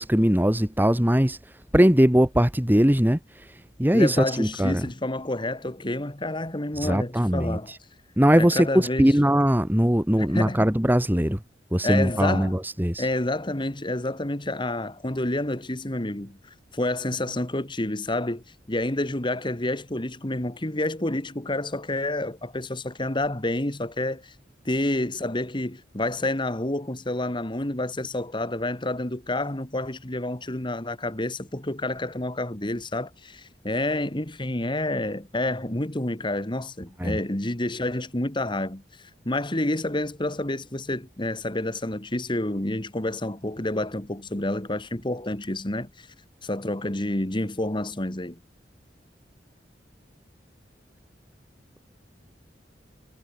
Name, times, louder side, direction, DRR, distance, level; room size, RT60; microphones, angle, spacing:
voice 1, 0.0-4.9 6.7-7.8 8.2-11.4 11.7-13.1 37.0-37.2, equal, 10° right, 1.7 m, -21 dB
voice 2, 3.9-7.7 8.4-9.1 10.2-10.6 11.8-12.6 13.0-16.4 16.7-24.3 24.7-38.8 39.3-46.1 46.4-48.4, left 1 dB, 25° left, 1.9 m, -29 dB
head